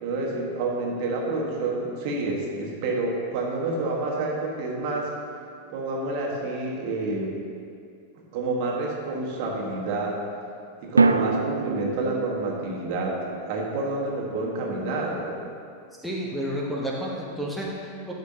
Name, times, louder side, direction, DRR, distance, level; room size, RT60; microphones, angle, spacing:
voice 1, 0.0-5.1 5.7-7.3 8.3-10.2 10.8-13.2 13.4-15.4, right 2 dB, 45° right, -2 dB, 1.4 m, -28 dB
sound 1, 5.0-6.1 11.0-15.3, right 3 dB, 75° right, 0.3 m, -28 dB
voice 2, 16.0-18.1, equal, ahead, -3 dB, 1.0 m, -31 dB
11.5 x 6.0 x 2.8 m, 2.3 s
figure-of-eight pair, 90°, 0 cm